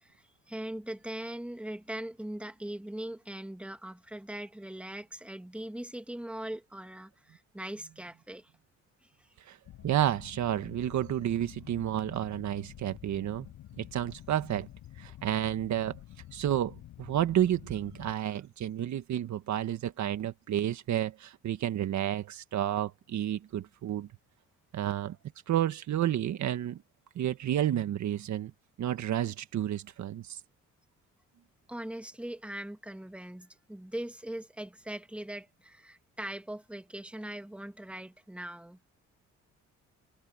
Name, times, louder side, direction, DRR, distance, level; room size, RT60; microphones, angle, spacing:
voice 1, 0.0-8.5 9.0-9.3 27.2-27.3 31.7-38.8, right 1 dB, 5° right, 2.0 m, -41 dB
sound 1, 9.6-18.1, left 13 dB, 80° left, 7.8 m, -49 dB
voice 2, 9.8-13.5 13.8-14.7 15.0-16.0 16.3-24.1 24.7-25.2 25.5-26.8 27.1-28.5 28.8-30.4, right 11 dB, 70° right, 1.6 m, -31 dB
cardioid pair, 90°, 30 cm